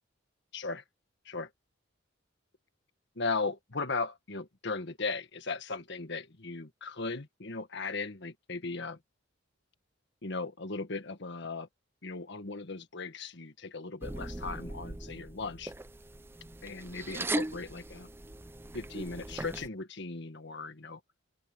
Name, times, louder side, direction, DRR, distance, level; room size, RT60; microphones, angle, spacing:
voice 1, 0.5-0.8 1.3-1.5 3.2-9.0 10.2-11.7 12.0-15.7 16.6-18.1 18.7-21.0, left 3 dB, 60° left, 1.6 m, -37 dB
sound 1, 14.0-19.7, right 2 dB, 10° right, 0.5 m, -39 dB
open air
head